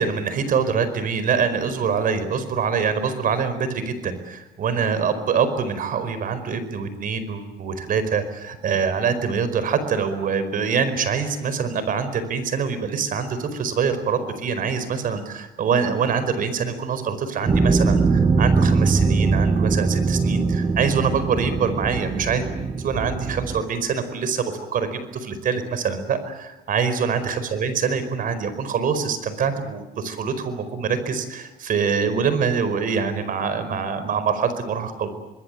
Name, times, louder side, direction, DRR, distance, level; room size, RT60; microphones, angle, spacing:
voice 1, 0.0-22.4 22.8-35.1, right 6 dB, 55° right, 12 dB, 4.8 m, -24 dB
sound 1, 17.5-23.6, right 4 dB, 30° right, 2.0 m, -21 dB
26.0 x 21.0 x 9.2 m, 1.0 s
cardioid pair, 110°, 17 cm